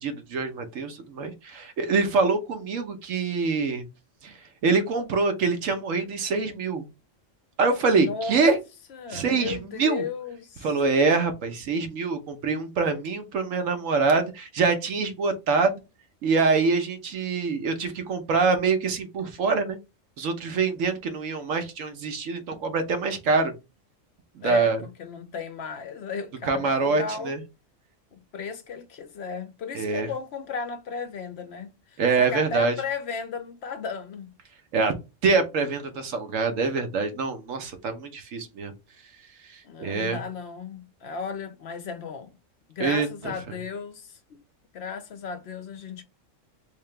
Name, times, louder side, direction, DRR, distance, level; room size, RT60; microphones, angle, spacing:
voice 1, 0.0-3.8 4.2-4.3 4.6-6.9 7.6-8.6 9.1-10.0 10.6-15.8 16.2-19.8 20.2-23.5 24.3-24.8 26.4-27.4 29.7-30.1 32.0-32.7 34.7-34.9 35.2-38.7 39.5-40.2 42.8-43.3, right 4 dB, 80° right, 1.2 m, -25 dB
voice 2, 7.9-8.6 8.9-10.7 24.4-27.3 28.1-34.3 39.6-42.3 42.8-44.2 44.7-46.0, left 5 dB, 65° left, 0.8 m, -35 dB
3.6 x 2.8 x 3.2 m
omnidirectional pair, 1.3 m